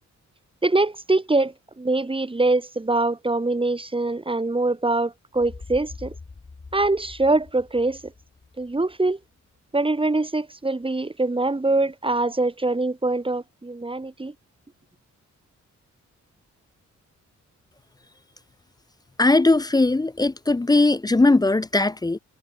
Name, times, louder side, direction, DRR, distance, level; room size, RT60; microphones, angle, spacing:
voice 1, 0.6-6.1 6.7-8.0 8.6-9.2 9.7-14.3, right 2 dB, 15° right, 1.7 m, -23 dB
sound 1, 5.3-9.2, left 4 dB, 35° left, 7.6 m, -44 dB
voice 2, 19.2-22.2, left 2 dB, 15° left, 0.4 m, -19 dB
cardioid pair, 95°, 30 cm